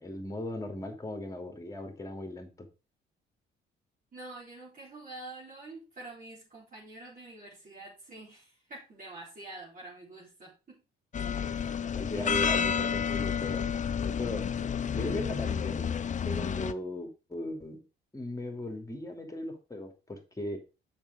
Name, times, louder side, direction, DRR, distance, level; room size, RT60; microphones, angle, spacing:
voice 1, 0.0-2.7 11.4-13.7 14.0-17.8 18.1-20.6, left 1 dB, 15° left, 2.8 m, -38 dB
voice 2, 4.1-10.8 11.5-11.7, right 2 dB, 45° right, 4.2 m, -47 dB
sound 1, 11.1-16.7, left 7 dB, 40° left, 0.6 m, -30 dB
7.2 x 6.0 x 5.0 m
cardioid pair, 90°, 20 cm